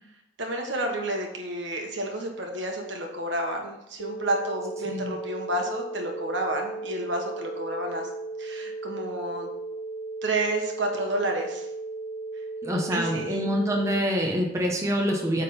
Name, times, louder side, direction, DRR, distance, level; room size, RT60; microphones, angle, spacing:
voice 1, 0.4-8.1 8.4-9.5 10.2-11.7 12.9-13.4, right 1 dB, 70° right, 3 dB, 1.3 m, -30 dB
sound 1, 4.0-14.0, right 3 dB, 40° left, 0.3 m, -36 dB
voice 2, 4.8-5.2 12.6-15.4, equal, 15° right, 0 dB, 0.9 m, -26 dB
8.7 x 3.7 x 5.4 m, 0.86 s
head